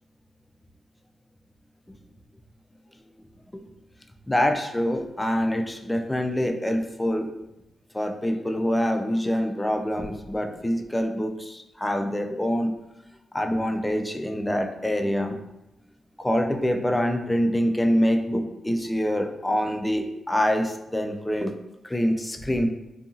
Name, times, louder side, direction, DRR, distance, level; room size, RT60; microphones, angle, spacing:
voice 1, 4.3-7.3 7.9-12.7 13.3-15.4 16.2-21.5 21.8-22.7, equal, 10° left, 5 dB, 0.3 m, -25 dB
2.7 x 2.7 x 2.4 m, 0.90 s
cardioid pair, 75°, 0 cm